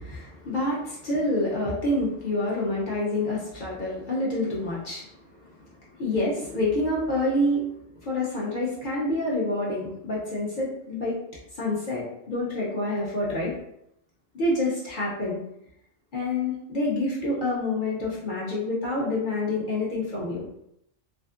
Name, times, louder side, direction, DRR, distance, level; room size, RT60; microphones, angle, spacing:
voice 1, 0.0-5.1 5.4-5.7 6.0-7.6 8.0-11.2 11.5-13.5 14.3-15.4 16.1-20.4, left 1 dB, 50° left, -5 dB, 0.7 m, -27 dB
2.5 x 2.3 x 2.4 m, 0.76 s
omnidirectional pair, 1.3 m